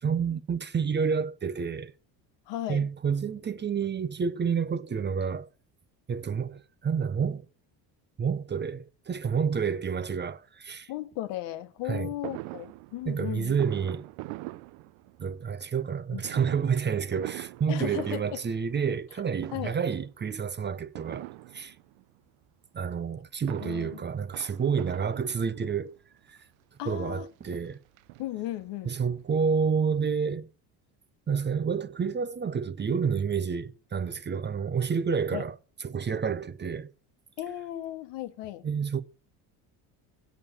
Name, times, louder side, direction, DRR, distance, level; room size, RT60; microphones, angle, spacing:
voice 1, 0.0-1.9 2.7-5.5 6.1-7.5 8.2-10.9 11.9-12.1 13.1-14.0 15.2-21.3 21.5-21.7 22.7-26.0 26.3-26.4 26.9-27.8 28.8-30.5 31.3-35.5 35.8-36.9 38.6-39.0, right 6 dB, 25° right, 0.6 m, -29 dB
voice 2, 2.5-2.9 10.9-13.5 16.1-16.2 17.7-18.4 19.5-19.8 23.6-24.0 26.8-27.3 28.2-28.9 35.3-35.5 37.4-38.7, left 14 dB, 75° left, 1.2 m, -36 dB
Fireworks, 12.2-15.4 16.2-19.1 19.4-20.0 20.9-22.0 23.2-25.8 26.6-26.7 27.0-27.1 27.4-28.7 29.0-29.1 29.3-29.4, right 19 dB, 85° right, 0.7 m, -43 dB
8.2 x 7.2 x 8.5 m
supercardioid pair, 100°, 44 cm